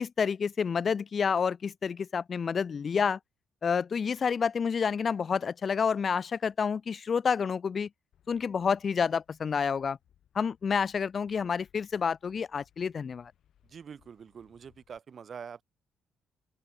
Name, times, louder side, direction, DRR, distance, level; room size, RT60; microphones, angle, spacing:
voice 1, 0.0-3.2 3.6-7.9 8.3-10.0 10.4-13.3, left 6 dB, 45° left, 0.4 m, -29 dB
sound 1, 8.1-15.0, left 10 dB, 70° left, 7.3 m, -68 dB
voice 2, 13.7-15.6, right 7 dB, 50° right, 1.3 m, -45 dB
open air
cardioid pair, 90°, 0 cm